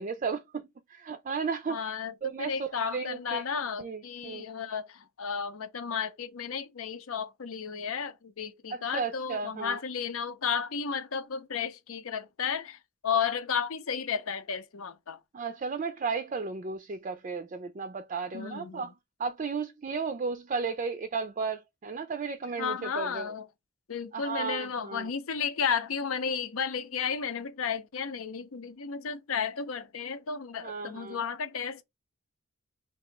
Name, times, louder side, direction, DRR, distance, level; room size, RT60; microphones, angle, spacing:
voice 1, 0.0-1.8 2.2-2.5 2.9-3.4 3.8-4.5 8.7-9.8 15.3-18.9 19.2-23.3 24.1-25.1 30.6-31.2, right 5 dB, 40° right, 0.4 m, -34 dB
voice 2, 1.7-15.2 18.3-18.9 22.6-23.5 23.9-31.8, left 6 dB, 90° left, 0.7 m, -33 dB
3.0 x 2.7 x 4.5 m
head